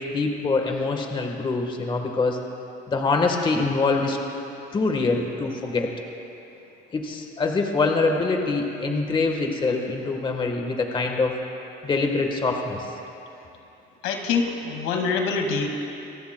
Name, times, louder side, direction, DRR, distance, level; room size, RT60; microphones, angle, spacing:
voice 1, 0.0-2.4 2.9-4.2 4.7-5.9 6.9-11.4 11.8-12.9, left 3 dB, 25° left, 3 dB, 1.3 m, -24 dB
voice 2, 14.0-15.8, left 4 dB, 80° left, 3 dB, 2.0 m, -25 dB
26.0 x 19.5 x 2.2 m, 2.9 s
cardioid pair, 130°, 20 cm